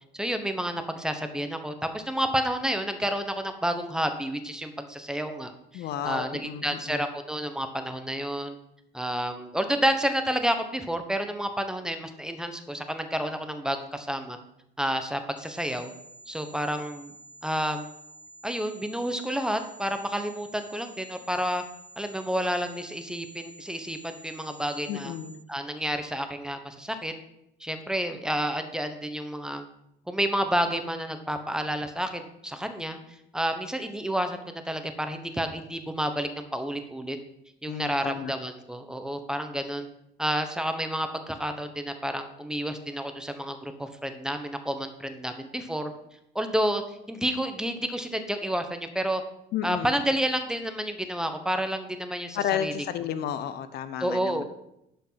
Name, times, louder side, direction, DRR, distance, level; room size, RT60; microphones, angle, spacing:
voice 1, 0.1-8.6 8.9-14.4 14.8-15.9 16.3-17.1 17.4-17.9 18.4-21.6 22.0-25.1 25.5-27.1 27.6-29.6 30.1-33.0 33.3-37.2 37.6-39.9 40.2-45.9 46.3-46.8 47.1-49.2 49.6-52.7 54.0-54.4, equal, 5° right, 7 dB, 1.1 m, -30 dB
voice 2, 5.7-7.0 24.9-25.3 37.6-38.3 49.5-49.9 52.3-54.4, left 9 dB, 70° left, 12 dB, 0.8 m, -32 dB
sound 1, 15.4-25.4, right 1 dB, 25° left, 2.4 m, -50 dB
11.5 x 5.4 x 5.8 m, 0.80 s
cardioid pair, 110°, 17 cm